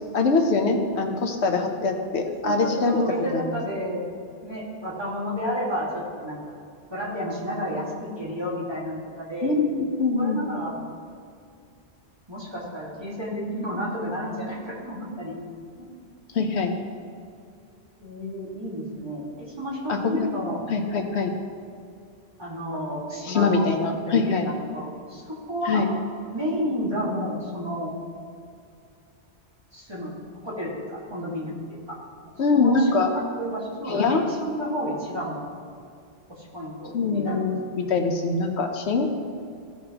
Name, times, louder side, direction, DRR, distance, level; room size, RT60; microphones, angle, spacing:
voice 1, 0.1-3.0 3.3-3.5 9.4-10.4 16.3-16.8 19.9-20.3 20.7-21.3 23.2-24.5 25.7-25.9 32.4-33.1 33.9-34.2 36.9-39.1, left 4 dB, 85° left, 4 dB, 1.1 m, -23 dB
voice 2, 2.4-4.1 4.4-6.4 6.9-9.5 10.2-10.8 12.3-15.4 15.8-15.9 18.0-20.6 22.4-23.8 24.1-25.9 26.3-27.9 29.7-30.1 30.4-31.6 31.9-32.0 32.5-35.5 36.3-37.5, equal, 25° right, -6 dB, 2.0 m, -31 dB
15.5 x 5.7 x 2.9 m, 2.4 s
omnidirectional pair, 1.1 m